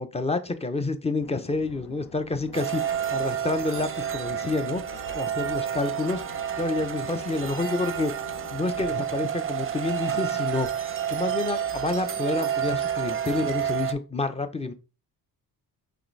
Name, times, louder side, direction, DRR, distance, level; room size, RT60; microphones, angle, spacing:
voice 1, 0.0-8.1 8.5-14.7, left 3 dB, 15° left, 0.5 m, -29 dB
sound 1, 1.2-8.9, left 7 dB, 70° left, 0.7 m, -47 dB
sound 2, 2.5-13.9, right 9 dB, 35° right, 0.5 m, -30 dB
4.8 x 3.4 x 3.2 m
cardioid pair, 75°, 40 cm